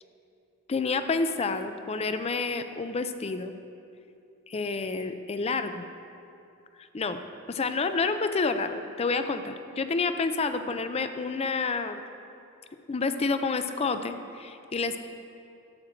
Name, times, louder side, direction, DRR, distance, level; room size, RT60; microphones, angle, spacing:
voice 1, 0.7-3.5 4.5-5.9 6.9-7.2 7.5-12.0 12.9-15.0, left 4 dB, 30° left, 9 dB, 0.5 m, -29 dB
11.5 x 7.6 x 4.4 m, 2.6 s
head